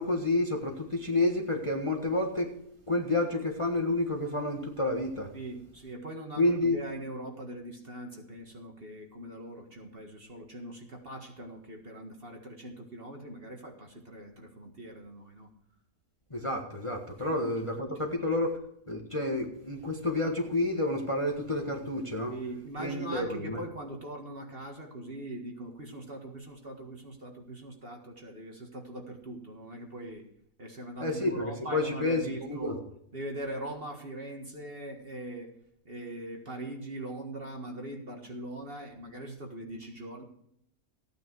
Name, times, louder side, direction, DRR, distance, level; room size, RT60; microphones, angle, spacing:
voice 1, 0.0-2.5 2.9-5.3 6.4-6.8 16.3-18.6 18.9-22.3 22.8-23.6 31.0-32.8, left 2 dB, 20° left, 1 dB, 1.4 m, -29 dB
voice 2, 5.3-15.5 17.4-18.0 22.3-30.3 30.6-32.8 33.1-35.5 35.9-40.2, right 1 dB, 35° right, 2 dB, 1.8 m, -41 dB
15.5 x 9.3 x 4.7 m, 0.75 s
omnidirectional pair, 1.8 m